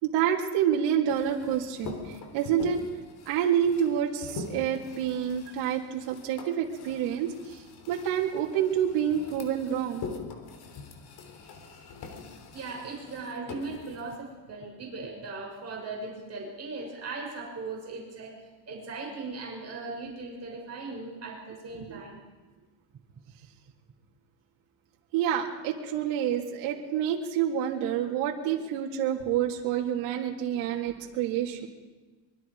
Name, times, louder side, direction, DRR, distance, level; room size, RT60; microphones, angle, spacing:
voice 1, 0.0-2.8 3.3-7.6 7.9-10.1 21.9-22.0 25.1-31.7, right 9 dB, 80° right, -1 dB, 3.1 m, -28 dB
sound 1, 1.1-14.2, left 4 dB, 50° left, 3.4 m, -44 dB
voice 2, 12.5-18.4 18.7-22.2, right 3 dB, 30° right, -1 dB, 6.4 m, -38 dB
24.0 x 23.5 x 4.9 m, 1.3 s
cardioid pair, 145°, 48 cm